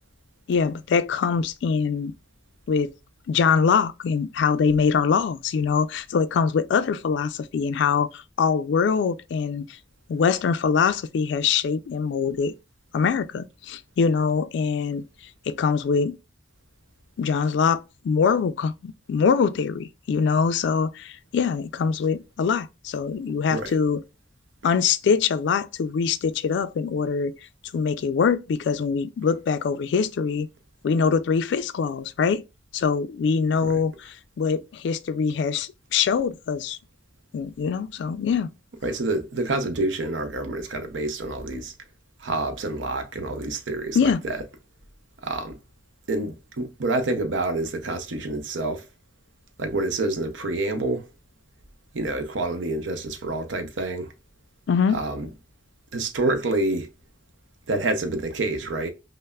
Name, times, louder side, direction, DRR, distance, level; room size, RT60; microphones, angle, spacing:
voice 1, 0.5-2.1 2.7-2.9 3.3-9.6 10.1-12.5 12.9-15.0 15.5-16.2 17.2-24.0 24.6-27.3 27.7-30.5 30.8-32.4 32.7-36.8 37.3-38.5 44.0-44.2 54.7-55.0, left 6 dB, 70° left, 0.3 m, -23 dB
voice 2, 38.8-41.7 42.2-44.4 45.2-45.6 46.1-48.8 49.6-51.0 51.9-54.1 54.9-55.3 55.9-56.9 57.7-58.9, right 2 dB, 85° right, 0.6 m, -27 dB
5.4 x 2.0 x 2.2 m
head